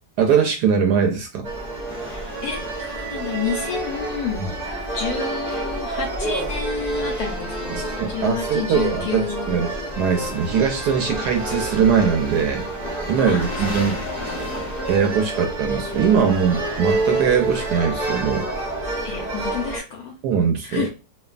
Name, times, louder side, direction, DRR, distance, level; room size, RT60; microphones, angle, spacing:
voice 1, 0.2-1.5 4.4-4.6 7.7-12.7 13.1-14.0 14.9-18.5 20.2-20.9, right 7 dB, 70° right, 4 dB, 1.0 m, -21 dB
sound 1, 1.4-19.8, right 2 dB, 50° right, 0.5 m, -28 dB
sound 2, 1.9-5.7 9.9-17.5, left 1 dB, 40° left, 0.4 m, -38 dB
voice 2, 2.1-4.5 4.9-9.6 13.3-13.9 19.0-20.1 20.6-20.9, left 6 dB, 70° left, 2 dB, 1.0 m, -30 dB
3.0 x 2.2 x 2.3 m, 0.30 s
omnidirectional pair, 2.0 m